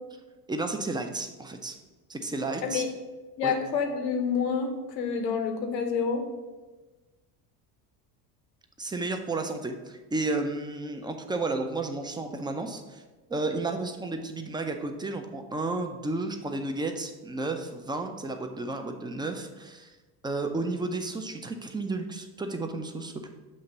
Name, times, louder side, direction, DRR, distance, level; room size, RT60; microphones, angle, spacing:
voice 1, 0.5-1.8 2.1-2.8 3.4-3.5 8.8-13.0 13.3-20.0 20.2-23.3, right 2 dB, 10° right, 5 dB, 0.5 m, -32 dB
voice 2, 3.4-6.2, left 6 dB, 85° left, 5 dB, 1.1 m, -28 dB
7.4 x 2.9 x 5.4 m, 1.2 s
hypercardioid pair, 85°, 49 cm